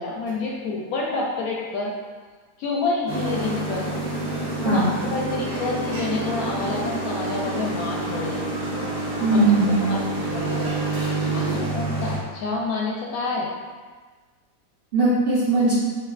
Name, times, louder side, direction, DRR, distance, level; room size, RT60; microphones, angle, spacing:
voice 1, 0.0-1.9 2.6-3.9 4.6-8.4 9.3-9.5 9.9-10.0 10.3-10.8 11.3-13.5 15.6-15.7, left 3 dB, 70° left, -2 dB, 0.9 m, -28 dB
sound 1, 3.1-12.2, right 2 dB, 75° right, 1.5 m, -28 dB
voice 2, 9.2-9.9 14.9-15.7, right 2 dB, 60° right, -9 dB, 0.6 m, -19 dB
5.6 x 2.4 x 2.4 m, 1.4 s
omnidirectional pair, 1.8 m